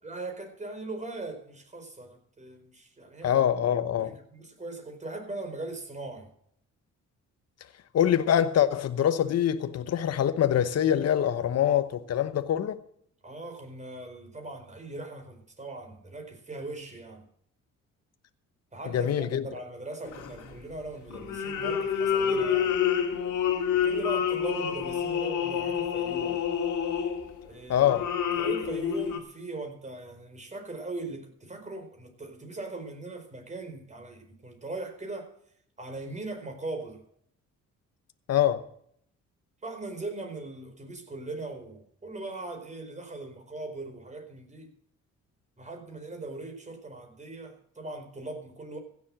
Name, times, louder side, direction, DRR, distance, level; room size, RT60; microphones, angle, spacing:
voice 1, 0.0-3.4 4.0-6.3 13.2-17.2 18.7-22.7 23.7-26.4 27.4-27.9 28.4-35.3 35.8-37.0 39.6-44.7 45.6-48.8, right 2 dB, 25° right, 4.6 m, -39 dB
voice 2, 3.2-4.1 7.9-12.8 18.9-19.4 27.7-28.1 38.3-38.6, left 10 dB, 55° left, 1.0 m, -24 dB
sound 1, 20.1-20.6 21.1-27.4 27.8-29.2, left 8 dB, 80° left, 2.5 m, -28 dB
16.0 x 7.5 x 7.6 m
cardioid pair, 90°, 30 cm